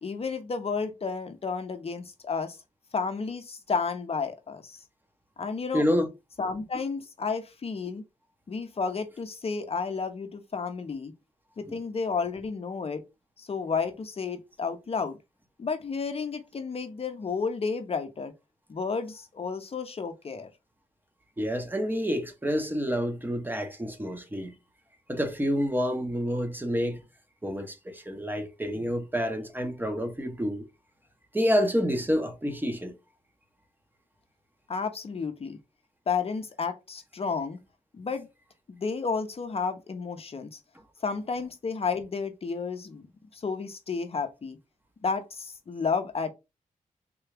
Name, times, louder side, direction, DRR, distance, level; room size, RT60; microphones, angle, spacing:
voice 1, 0.0-2.6 2.9-4.8 5.4-5.9 6.4-8.0 8.5-11.1 11.6-13.0 13.4-15.2 15.6-18.3 18.7-20.5 34.7-35.6 36.1-37.6 37.9-38.3 38.7-40.6 41.0-43.1 43.3-44.6 45.0-46.3, left 5 dB, 45° left, 0.6 m, -32 dB
voice 2, 5.7-6.1 11.7-11.8 21.4-24.5 25.1-27.0 27.4-30.6 31.3-32.9, equal, 15° right, 0.8 m, -28 dB
3.7 x 2.3 x 3.3 m
cardioid pair, 70°, 14 cm